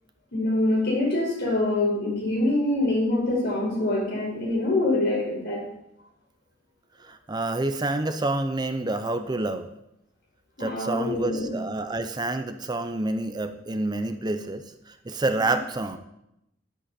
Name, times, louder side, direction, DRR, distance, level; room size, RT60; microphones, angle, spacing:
voice 1, 0.3-5.7 10.6-11.5, left 2 dB, 60° left, -2 dB, 5.0 m, -25 dB
voice 2, 7.0-9.7 10.6-16.0, right 2 dB, 20° right, 9 dB, 0.6 m, -28 dB
12.0 x 10.0 x 4.3 m, 0.82 s
head